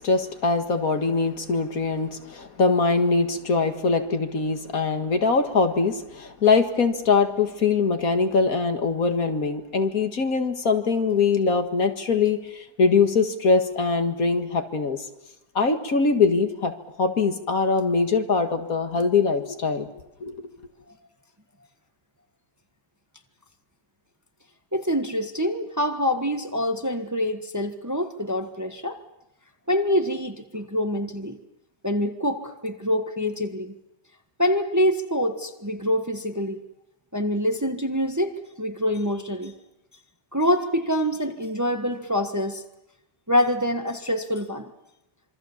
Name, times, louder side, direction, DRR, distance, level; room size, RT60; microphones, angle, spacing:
voice 1, 0.0-15.0 15.6-16.7 17.0-19.9 20.2-20.4, left 4 dB, 60° left, 7 dB, 2.2 m, -22 dB
voice 2, 24.7-29.0 29.7-31.4 31.8-33.7 34.4-36.6 37.1-39.5 40.3-42.6 43.3-44.7, equal, 10° right, 6 dB, 1.3 m, -25 dB
26.5 x 24.0 x 7.3 m, 0.87 s
omnidirectional pair, 1.7 m